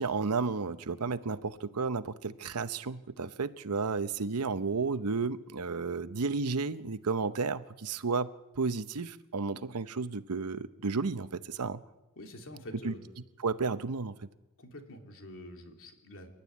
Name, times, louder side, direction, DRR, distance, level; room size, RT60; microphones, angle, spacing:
voice 1, 0.0-8.3 8.6-11.8 12.8-12.9 13.4-14.1, right 4 dB, 85° right, 0.8 m, -32 dB
voice 2, 12.2-13.1 14.6-16.3, left 1 dB, 65° left, 3.2 m, -46 dB
28.5 x 12.0 x 9.6 m
head